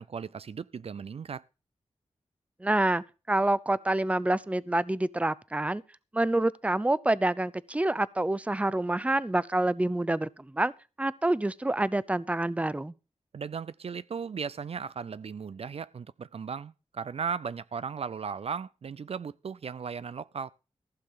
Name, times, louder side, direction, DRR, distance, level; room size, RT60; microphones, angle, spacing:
voice 1, 0.0-1.4 13.3-20.5, right 6 dB, 60° right, 0.5 m, -36 dB
voice 2, 2.6-5.8 6.1-10.7 11.0-12.9, right 1 dB, 10° right, 0.6 m, -27 dB
15.0 x 6.6 x 5.6 m
cardioid pair, 60°, 12 cm